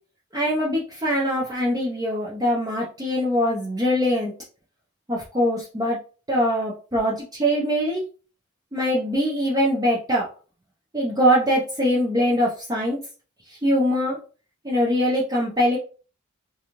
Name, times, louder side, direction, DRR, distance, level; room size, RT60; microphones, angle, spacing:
voice 1, 0.3-4.3 5.1-6.0 6.3-8.0 8.7-10.3 10.9-13.0 13.5-14.2 14.6-15.8, equal, 15° right, -6 dB, 0.5 m, -22 dB
2.5 x 2.3 x 2.9 m, 0.37 s
head